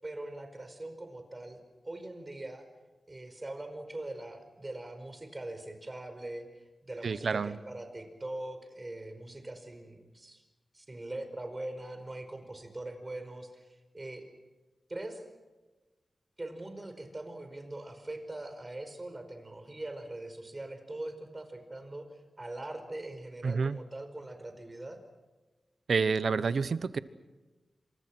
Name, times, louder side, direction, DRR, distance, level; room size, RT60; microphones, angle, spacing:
voice 1, 0.0-2.6 3.1-6.5 6.8-10.4 10.7-14.3 14.9-15.2 16.4-25.0, right 2 dB, 25° right, 7 dB, 5.0 m, -42 dB
voice 2, 7.0-7.6 23.4-23.8 25.9-27.0, right 5 dB, 80° right, 14 dB, 1.1 m, -29 dB
28.5 x 27.0 x 6.2 m, 1.2 s
wide cardioid pair, 90°, 0 cm